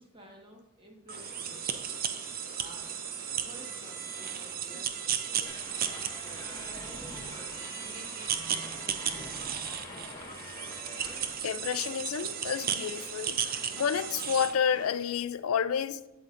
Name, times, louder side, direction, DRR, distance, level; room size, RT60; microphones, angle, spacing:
voice 1, 0.0-1.7 2.5-2.9 3.4-5.5 6.2-9.8, equal, 25° right, 1.5 m, -53 dB
sound 1, 1.1-15.0, left 4 dB, 40° left, 0.7 m, -49 dB
sound 2, 1.1-14.5, right 9 dB, 45° right, 0.5 m, -35 dB
sound 3, 5.5-11.3, left 2 dB, 15° left, 1.3 m, -46 dB
voice 2, 11.4-16.0, left 7 dB, 90° left, 0.4 m, -30 dB
8.5 x 8.5 x 2.6 m
head